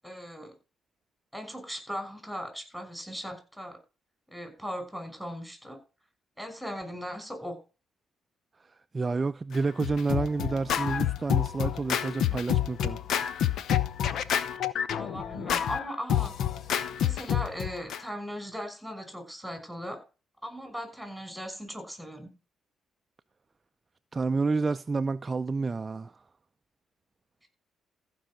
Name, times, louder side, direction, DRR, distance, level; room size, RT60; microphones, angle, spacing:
voice 1, 0.0-0.5 1.3-3.8 4.3-5.8 6.4-7.6 14.9-16.4 17.0-20.0 20.4-22.3, equal, ahead, 6.0 m, -38 dB
voice 2, 8.9-13.0 24.1-26.1, right 4 dB, 30° right, 0.5 m, -29 dB
Scratching (performance technique), 9.5-18.0, left 10 dB, 75° left, 0.8 m, -28 dB
15.0 x 5.5 x 6.3 m
cardioid pair, 90°, 0 cm